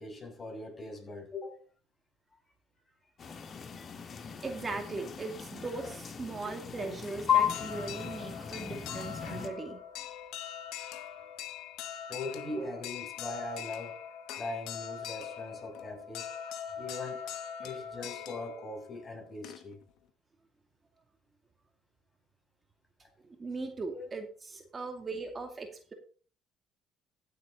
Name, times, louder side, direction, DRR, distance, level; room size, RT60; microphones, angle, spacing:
voice 1, 0.0-1.6 12.1-14.0 14.4-16.3 16.7-17.2 17.6-19.8 23.0-23.1 23.9-24.1, left 2 dB, 30° left, 6.9 m, -41 dB
sound 1, 3.2-9.5, left 9 dB, 45° left, 1.8 m, -35 dB
voice 2, 4.4-9.8 12.6-12.7 23.2-25.9, right 3 dB, 30° right, 2.2 m, -39 dB
sound 2, 7.3-19.9, left 9 dB, 75° left, 1.1 m, -42 dB
15.0 x 7.7 x 3.9 m
supercardioid pair, 80°, 0 cm